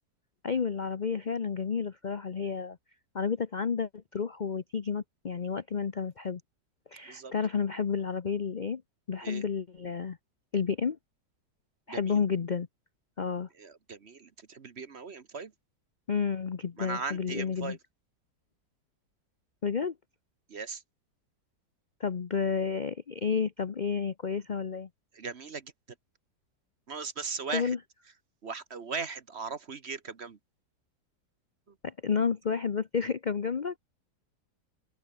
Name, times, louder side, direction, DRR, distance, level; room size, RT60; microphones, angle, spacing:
voice 1, 0.4-2.8 3.1-6.4 6.9-8.8 9.1-10.2 10.5-11.0 11.9-12.7 13.2-13.5 16.1-17.8 19.6-19.9 22.0-24.9 27.5-27.8 31.8-33.8, left 6 dB, 45° left, 0.6 m, -31 dB
voice 2, 11.9-12.2 13.5-15.5 16.8-17.8 20.5-20.8 25.1-25.7 26.9-27.8 28.4-30.4 31.7-31.8, right 5 dB, 45° right, 1.3 m, -38 dB
open air
omnidirectional pair, 1.8 m